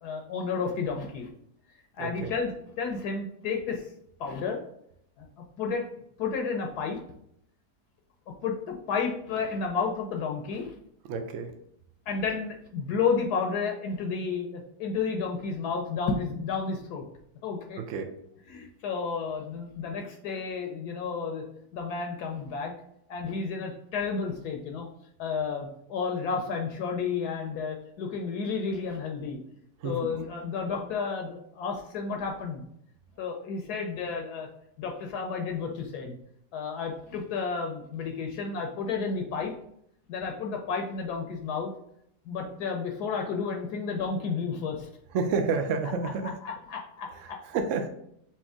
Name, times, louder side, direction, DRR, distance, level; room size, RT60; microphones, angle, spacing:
voice 1, 0.0-1.3 1.9-3.9 4.2-4.6 5.2-5.3 5.6-5.9 6.2-7.0 8.4-10.7 12.1-17.1 17.4-17.8 18.5-21.4 21.7-22.7 23.1-24.9 25.2-29.4 29.8-32.6 33.2-34.5 34.8-36.2 36.5-39.5 40.1-41.7 42.3-44.9 46.2-47.4, left 5 dB, 75° left, 2 dB, 1.1 m, -31 dB
voice 2, 2.0-2.3 11.1-11.5 17.8-18.1 29.8-30.2 45.1-46.4 47.1-47.9, right 4 dB, 70° right, 6 dB, 0.7 m, -30 dB
4.3 x 2.9 x 3.5 m, 0.73 s
omnidirectional pair, 1.7 m